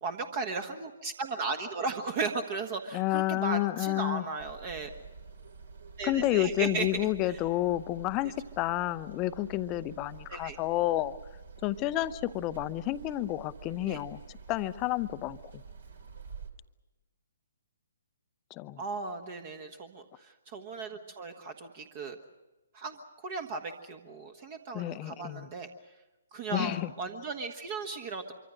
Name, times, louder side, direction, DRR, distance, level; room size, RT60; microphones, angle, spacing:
voice 1, 0.0-4.9 6.0-7.0 10.3-10.6 13.8-14.0 18.8-22.2 22.7-25.7 26.3-28.3, right 4 dB, 35° right, 7 dB, 1.4 m, -36 dB
voice 2, 2.9-4.2 6.0-11.2 11.6-15.6 18.5-18.8 24.7-25.5 26.5-26.9, left 15 dB, 25° left, 14 dB, 0.7 m, -30 dB
sound 1, 4.4-16.5, right 5 dB, 60° right, 2.9 m, -48 dB
25.0 x 24.5 x 6.3 m, 1.1 s
figure-of-eight pair, 130°, 0 cm